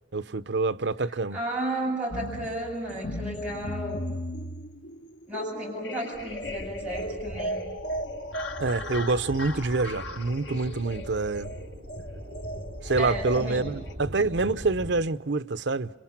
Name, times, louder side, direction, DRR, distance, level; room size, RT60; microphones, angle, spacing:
voice 1, 0.1-1.4 8.6-11.5 12.8-15.9, right 3 dB, 85° right, 0.8 m, -26 dB
voice 2, 1.3-4.1 5.3-7.6 13.0-13.6, right 1 dB, 5° right, 7.7 m, -33 dB
sound 1, 2.1-13.9, equal, 85° left, 1.6 m, -37 dB
sound 2, 6.1-14.9, equal, 40° right, 6.6 m, -41 dB
29.0 x 26.5 x 6.0 m
head